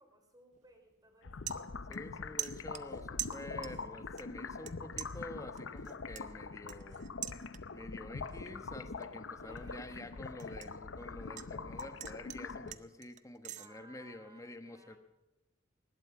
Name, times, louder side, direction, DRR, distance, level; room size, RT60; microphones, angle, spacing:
voice 1, 0.0-1.5 9.4-10.0 13.6-15.0, right 1 dB, 20° right, 3 dB, 3.2 m, -61 dB
sound 1, 0.5-0.7 1.1-2.1 2.4-3.9 4.2-4.7 5.0-7.9 8.3-8.6 9.0-11.5 11.8-13.7, right 12 dB, 40° right, 0.6 m, -44 dB
sound 2, 1.2-12.7, left 4 dB, 75° left, 0.7 m, -44 dB
voice 2, 1.9-7.1 7.7-15.0, left 1 dB, 15° left, 9 dB, 1.2 m, -48 dB
19.5 x 12.0 x 6.0 m, 1.0 s
head